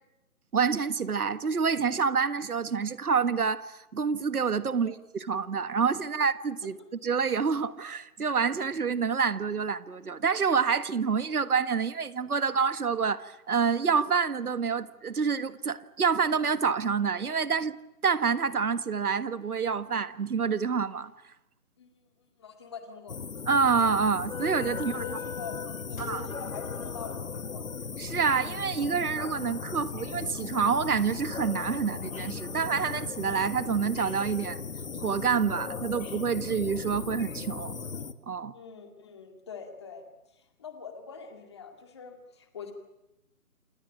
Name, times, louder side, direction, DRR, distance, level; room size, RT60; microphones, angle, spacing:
voice 1, 0.5-6.8 7.0-17.8 18.0-21.1 23.5-25.0 26.0-26.2 28.0-34.6 34.9-37.8 38.3-38.5, right 6 dB, 85° right, 1.6 m, -27 dB
voice 2, 21.8-23.2 24.7-25.6 25.9-27.7 38.5-42.7, left 6 dB, 20° left, 2.1 m, -44 dB
sound 1, 23.1-38.1, left 5 dB, 65° left, 1.7 m, -37 dB
27.5 x 18.5 x 9.0 m
hypercardioid pair, 175°, 44 cm